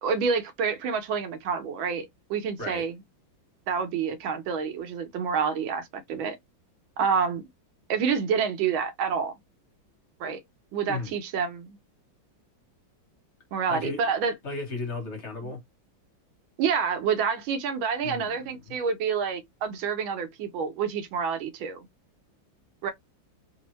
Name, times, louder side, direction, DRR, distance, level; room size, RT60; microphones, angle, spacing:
voice 1, 0.0-2.9 3.7-6.4 7.0-7.4 7.9-9.4 10.2-10.4 10.7-11.8 13.5-14.3 15.4-15.5 16.6-21.8 22.8-22.9, right 6 dB, 90° right, 1.6 m, -28 dB
voice 2, 13.7-14.1 14.4-15.6 18.0-18.7, left 3 dB, 40° left, 1.3 m, -35 dB
3.6 x 2.0 x 3.0 m
omnidirectional pair, 2.1 m